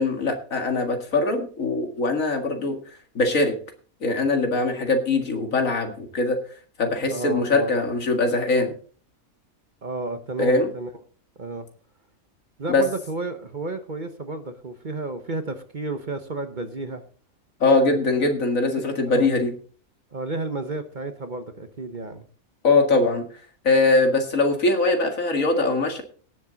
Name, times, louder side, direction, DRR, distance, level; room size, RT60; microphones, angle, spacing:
voice 1, 0.0-2.8 3.2-3.5 4.0-6.4 6.8-8.7 10.4-10.7 12.7-12.8 17.6-19.5 22.6-23.2 23.6-26.0, left 3 dB, 70° left, 4 dB, 2.3 m, -21 dB
voice 2, 7.1-7.7 9.8-10.9 11.4-11.7 12.6-17.0 17.9-18.4 18.7-19.3 20.1-22.3, right 3 dB, 40° right, 8 dB, 1.0 m, -32 dB
18.0 x 7.3 x 4.0 m, 0.42 s
omnidirectional pair, 1.5 m